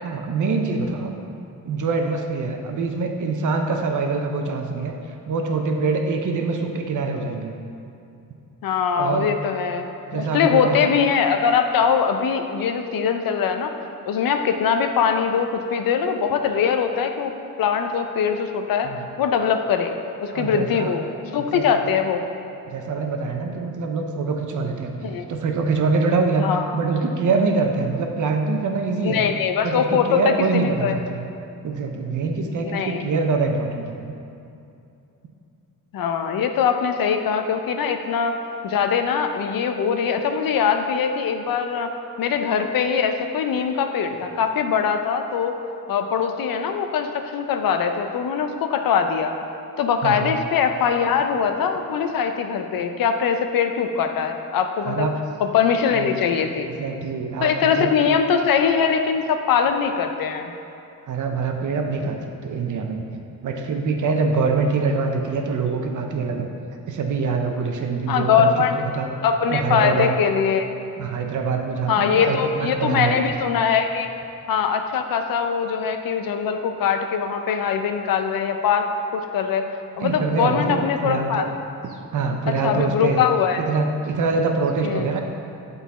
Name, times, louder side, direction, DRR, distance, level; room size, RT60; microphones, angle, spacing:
voice 1, 0.0-1.1 1.7-4.9 5.3-7.5 9.0-9.3 10.1-10.9 18.8-19.0 20.3-20.9 21.4-21.8 22.7-26.4 26.7-29.3 29.6-31.2 31.6-34.1 50.0-50.3 54.8-55.2 55.9-56.1 56.4-57.9 61.1-62.2 62.4-66.5 66.9-68.5 68.7-69.1 69.5-70.1 71.0-73.4 80.0-81.5 81.8-83.2 83.6-85.2, right 4 dB, 60° right, 3 dB, 0.7 m, -24 dB
voice 2, 8.6-13.7 14.1-17.3 17.6-18.9 19.2-21.0 21.3-22.2 25.0-25.3 26.4-26.7 29.0-30.2 30.5-30.9 32.6-33.1 35.9-38.4 38.6-41.9 42.2-45.6 45.9-49.3 49.8-55.1 55.4-56.7 57.4-60.5 68.1-68.8 69.2-70.7 71.9-74.1 74.5-78.9 79.1-79.7 80.0-81.5 82.5-83.6 84.8-85.0, left 7 dB, 75° left, 6 dB, 0.6 m, -22 dB
8.1 x 4.0 x 4.1 m, 2.7 s
cardioid pair, 110°, 34 cm